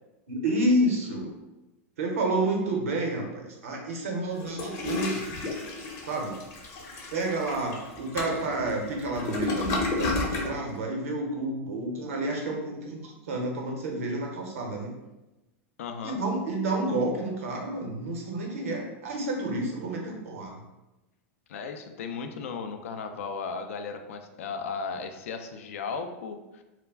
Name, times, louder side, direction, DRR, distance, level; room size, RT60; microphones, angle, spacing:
voice 1, 0.3-1.3 2.0-5.4 6.1-6.3 7.1-14.9 16.0-20.6, right 1 dB, 85° right, 1 dB, 0.7 m, -30 dB
Toilet flush, 4.4-10.5, left 3 dB, 40° left, 0.7 m, -32 dB
voice 2, 15.8-16.2 21.5-26.6, left 5 dB, 80° left, 6 dB, 0.3 m, -36 dB
2.3 x 2.1 x 3.4 m, 1.0 s
hypercardioid pair, 115°, 7 cm